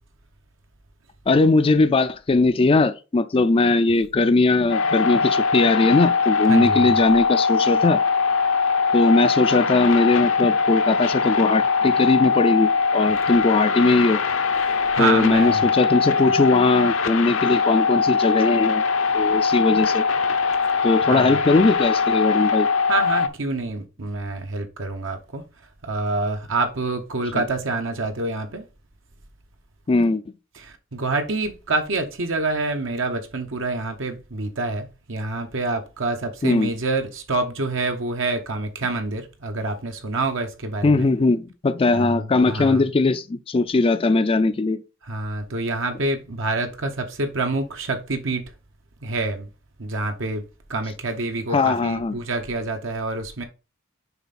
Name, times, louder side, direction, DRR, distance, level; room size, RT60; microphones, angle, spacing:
voice 1, 1.3-8.0 8.9-14.2 15.0-18.8 19.1-20.1 20.8-22.7 27.3-27.4 29.9-30.2 36.4-36.7 40.8-44.8 51.5-52.1, left 3 dB, 25° left, 0.4 m, -19 dB
sound 1, 4.7-23.3, left 5 dB, 70° left, 0.8 m, -21 dB
voice 2, 6.5-7.0 14.6-15.6 21.1-21.4 22.9-25.4 25.8-28.6 30.6-41.1 41.9-42.8 45.0-48.4 49.0-49.5 49.8-50.4 50.7-53.4, right 2 dB, 65° right, 1.0 m, -27 dB
7.0 x 4.6 x 4.2 m
head